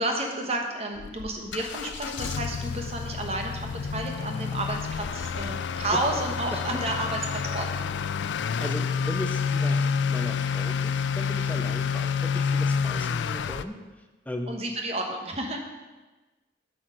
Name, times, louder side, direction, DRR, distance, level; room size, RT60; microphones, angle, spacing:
voice 1, 0.0-8.0 14.5-15.6, right 1 dB, 35° right, 2 dB, 1.1 m, -31 dB
Motor vehicle (road) / Accelerating revving vroom, 1.0-13.6, left 6 dB, 85° left, 0.3 m, -29 dB
voice 2, 8.6-14.6, left 1 dB, 10° left, 4 dB, 0.5 m, -37 dB
8.3 x 6.0 x 5.1 m, 1.2 s
head